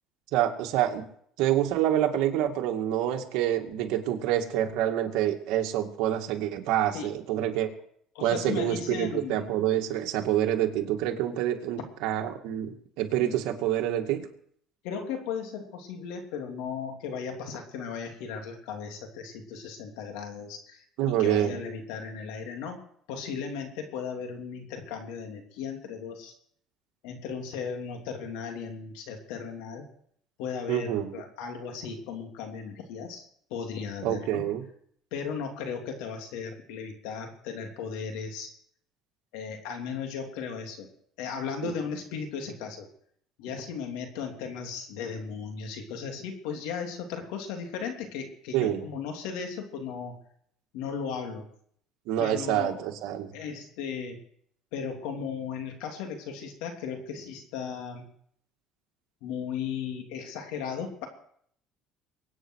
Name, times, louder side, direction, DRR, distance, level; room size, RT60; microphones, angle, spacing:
voice 1, 0.3-1.0 1.4-7.7 8.2-14.3 21.0-21.6 30.7-31.2 34.0-34.6 41.6-41.7 48.5-48.8 52.1-53.3, right 11 dB, 75° right, 3 dB, 2.2 m, -27 dB
voice 2, 8.1-9.5 14.8-22.8 23.1-26.3 27.0-29.8 30.4-33.2 33.5-34.4 35.1-38.5 39.3-40.9 41.2-42.9 43.4-50.1 50.7-51.5 52.2-52.8 53.3-54.2 54.7-58.1 59.2-61.1, left 6 dB, 85° left, 4 dB, 3.0 m, -36 dB
23.5 x 9.3 x 4.7 m, 0.64 s
cardioid pair, 125°, 0 cm